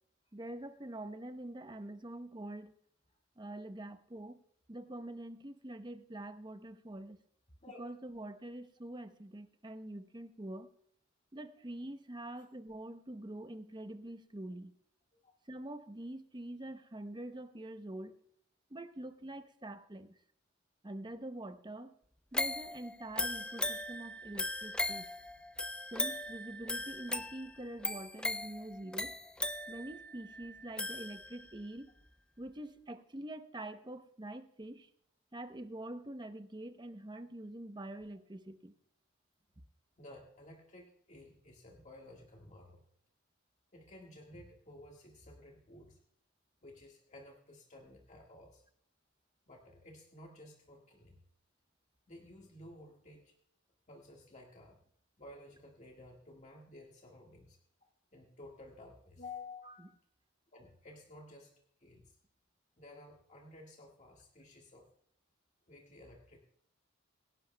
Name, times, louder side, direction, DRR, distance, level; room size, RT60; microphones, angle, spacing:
voice 1, 0.3-2.7 3.4-4.4 4.7-7.2 7.8-10.7 11.3-14.7 15.5-18.2 18.7-20.2 20.8-21.9 22.3-25.1 25.9-29.1 29.7-31.9 32.4-34.9 35.3-38.7 59.7-59.8, right 1 dB, 25° right, 0.8 m, -45 dB
sound 1, 22.3-31.6 32.1-32.2, left 1 dB, 5° left, 0.4 m, -38 dB
voice 2, 40.0-42.8 43.7-46.0 46.6-48.6 49.5-51.2 52.1-53.3 53.9-54.8 55.2-57.6 58.1-59.9 60.5-61.5 61.8-62.2 62.8-64.9 65.7-66.4, left 2 dB, 35° left, 1.7 m, -53 dB
24.0 x 11.0 x 2.3 m
head